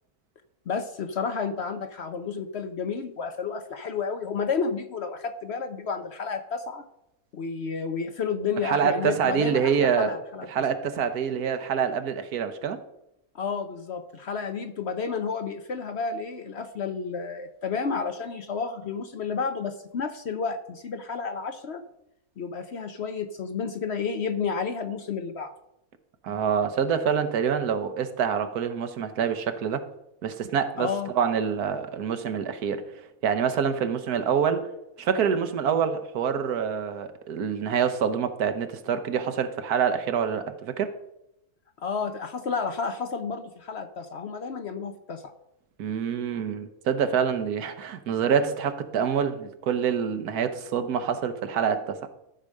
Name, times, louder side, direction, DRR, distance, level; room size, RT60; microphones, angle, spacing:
voice 1, 0.7-6.8 7.3-10.5 13.3-21.8 22.4-25.5 30.8-31.1 41.8-45.2, left 5 dB, 55° left, 0.8 m, -31 dB
voice 2, 8.6-10.1 10.5-12.8 26.2-29.8 30.2-30.9 31.1-32.9 33.2-34.7 35.0-40.9 45.8-52.1, right 7 dB, 80° right, 1.4 m, -26 dB
13.0 x 4.9 x 6.4 m
omnidirectional pair, 1.6 m